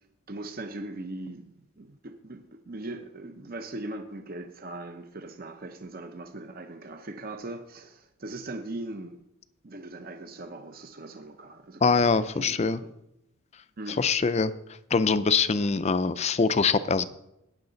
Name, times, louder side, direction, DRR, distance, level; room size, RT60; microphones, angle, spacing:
voice 1, 0.3-9.2 9.6-12.9 13.8-14.0, right 2 dB, 40° right, 6 dB, 0.7 m, -40 dB
voice 2, 11.8-12.8 14.0-14.5 14.9-17.0, left 4 dB, 30° left, 14 dB, 0.4 m, -23 dB
18.0 x 6.5 x 4.0 m, 0.86 s
head